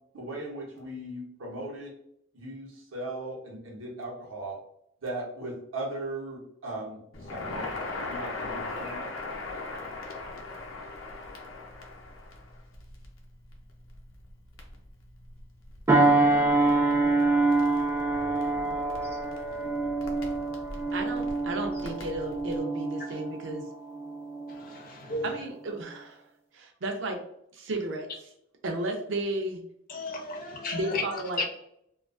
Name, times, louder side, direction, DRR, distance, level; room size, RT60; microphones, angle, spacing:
voice 1, 0.1-1.9 2.3-4.6 5.0-7.0 7.3-7.8 8.1-9.0 18.1-19.1 19.5-19.9, right 2 dB, 85° right, -2 dB, 0.8 m, -38 dB
Crackle, 7.1-22.6, left 2 dB, 85° left, 0.6 m, -40 dB
sound 1, 15.9-24.7 25.2-25.4, right 2 dB, 15° right, 0.4 m, -26 dB
voice 2, 20.9-23.6 25.2-26.2 26.5-27.2 27.5-28.3 28.6-29.6 30.7-31.4, right 2 dB, 70° right, 3 dB, 0.5 m, -33 dB
voice 3, 24.6-25.2 29.9-31.0 31.4-31.5, left 3 dB, 45° left, 3 dB, 0.5 m, -33 dB
2.3 x 2.3 x 2.3 m, 0.73 s
head